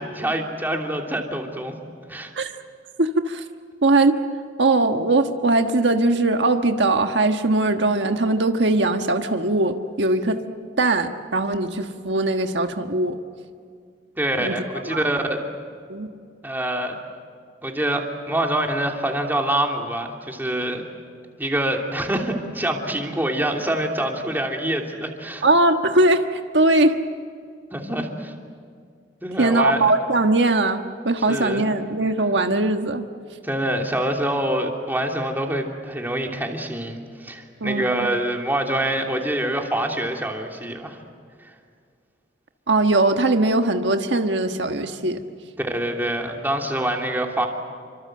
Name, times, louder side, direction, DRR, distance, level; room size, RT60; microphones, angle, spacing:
voice 1, 0.0-1.7 2.1-2.3 14.2-15.4 16.4-16.9 17.6-20.8 21.4-25.5 27.7-28.3 29.2-29.9 31.3-31.6 33.4-41.0 45.6-47.5, right 1 dB, 10° right, 1 dB, 2.9 m, -25 dB
voice 2, 3.0-3.4 3.8-4.2 4.6-10.4 10.8-13.2 14.4-14.5 14.8-15.0 15.9-16.1 25.4-27.0 29.4-33.0 37.6-38.1 42.7-45.2, right 2 dB, 85° right, 6 dB, 1.4 m, -20 dB
29.0 x 25.0 x 7.8 m, 2.2 s
head